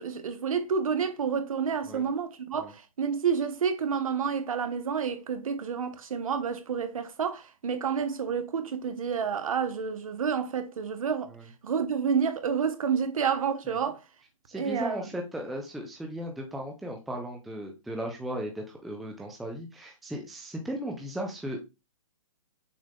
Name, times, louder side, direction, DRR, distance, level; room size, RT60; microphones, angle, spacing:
voice 1, 0.0-11.3 11.6-14.0 14.5-15.1, right 6 dB, 75° right, 0.9 m, -29 dB
voice 2, 14.5-21.6, right 1 dB, ahead, 0.3 m, -36 dB
6.4 x 2.4 x 3.4 m
hypercardioid pair, 155°, 18 cm